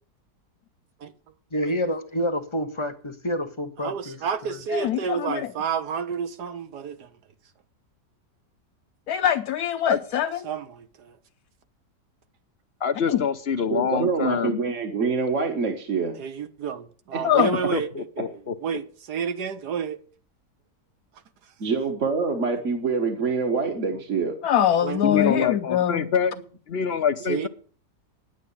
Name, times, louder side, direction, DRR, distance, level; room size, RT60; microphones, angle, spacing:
voice 1, 1.5-4.2 4.5-4.6, equal, 20° left, 0.9 m, -28 dB
voice 2, 3.8-7.1 10.4-11.2 16.2-20.0 23.9-24.0 24.8-25.0 27.3-27.5, right 7 dB, 75° right, 1.6 m, -30 dB
voice 3, 4.7-5.5 9.1-10.4 13.1-13.2 17.2-17.6 24.4-26.1, left 10 dB, 65° left, 1.2 m, -23 dB
voice 4, 12.8-14.6 17.7-18.6 25.0-26.3 26.7-27.5, left 7 dB, 50° left, 0.8 m, -25 dB
voice 5, 13.7-16.1 17.1-17.2 21.6-24.3, right 4 dB, 50° right, 1.6 m, -25 dB
10.0 x 8.4 x 8.4 m
omnidirectional pair, 1.8 m